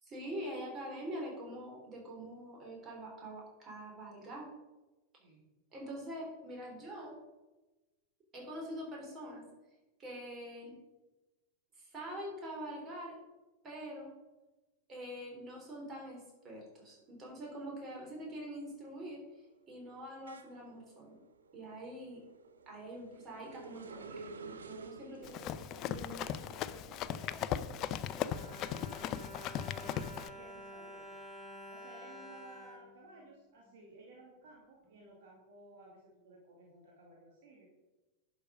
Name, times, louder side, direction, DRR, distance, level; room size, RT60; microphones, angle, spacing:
voice 1, 0.0-4.5 5.7-7.2 8.3-9.5 10.0-10.8 11.8-13.2 13.6-14.1 14.9-19.2 19.7-21.2 21.5-22.2 22.7-25.4 25.8-26.5, equal, 25° right, -1 dB, 4.0 m, -45 dB
sound 1, 17.5-17.8 18.1-29.4 29.8-31.5, right 4 dB, 70° right, 0.7 m, -53 dB
voice 2, 25.1-25.5 26.1-28.2 29.7-31.1 31.7-37.7, right 2 dB, 55° right, -2 dB, 2.2 m, -57 dB
Run, 25.2-30.3, left 10 dB, 35° left, 0.5 m, -38 dB
Bowed string instrument, 27.7-33.8 34.4-34.5 34.8-35.0, equal, 5° right, 2.8 m, -50 dB
11.0 x 6.3 x 5.2 m, 1.1 s
figure-of-eight pair, 90°, 0 cm